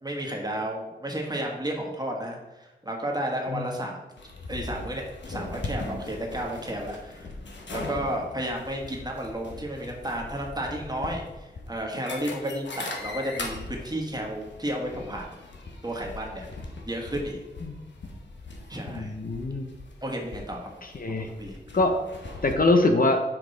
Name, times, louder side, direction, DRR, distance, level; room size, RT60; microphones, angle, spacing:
voice 1, 0.0-4.0 4.5-7.3 7.7-15.4 15.8-16.4 16.8-17.4 18.7-19.1 20.0-20.7 21.2-21.6, right 1 dB, 20° right, 0 dB, 1.5 m, -32 dB
sound 1, 4.2-22.5, left 2 dB, 85° left, 1.0 m, -40 dB
voice 2, 18.9-19.7 21.0-21.3 21.7-21.9 22.4-23.2, left 2 dB, 50° left, 4 dB, 0.7 m, -23 dB
5.9 x 5.1 x 4.0 m, 1.0 s
wide cardioid pair, 70°, 18 cm